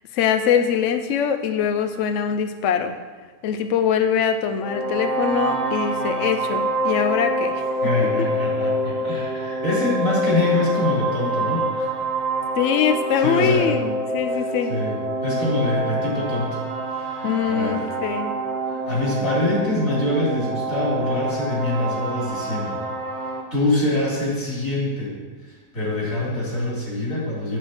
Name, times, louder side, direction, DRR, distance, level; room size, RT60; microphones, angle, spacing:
voice 1, 0.1-3.0 3.4-7.6 8.2-8.3 8.9-9.0 12.6-14.8 17.2-18.3, left 8 dB, 70° left, 8 dB, 0.7 m, -23 dB
sound 1, 4.6-23.4, right 1 dB, 45° right, 0.6 m, -26 dB
voice 2, 7.8-11.9 13.2-13.7 14.3-15.0 15.2-17.8 18.7-22.8 23.5-25.1 25.7-27.6, left 2 dB, 50° left, -6 dB, 3.6 m, -25 dB
8.6 x 7.3 x 4.3 m, 1.3 s
omnidirectional pair, 1.8 m